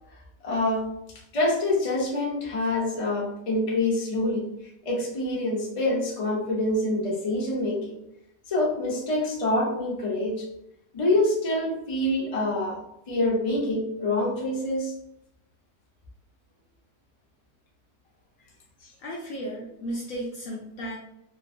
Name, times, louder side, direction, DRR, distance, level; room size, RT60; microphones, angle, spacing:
voice 1, 0.4-0.9 1.3-4.5 4.8-8.0 8.5-10.5 10.9-12.8 13.1-14.9, left 1 dB, 35° left, -4 dB, 0.5 m, -26 dB
voice 2, 19.0-21.0, equal, 65° left, -3 dB, 0.9 m, -34 dB
3.0 x 2.5 x 2.5 m, 0.79 s
omnidirectional pair, 1.8 m